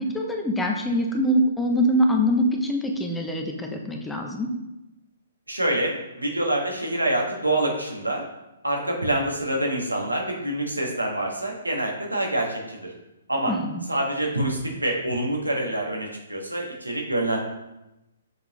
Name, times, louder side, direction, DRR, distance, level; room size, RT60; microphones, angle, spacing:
voice 1, 0.0-4.5 13.5-13.9, equal, 5° left, 2 dB, 0.7 m, -24 dB
voice 2, 5.5-8.2 8.6-12.9 13.3-13.5 13.9-17.4, right 1 dB, 80° right, 0 dB, 1.5 m, -26 dB
6.5 x 5.0 x 3.0 m, 0.95 s
figure-of-eight pair, 125°, 0 cm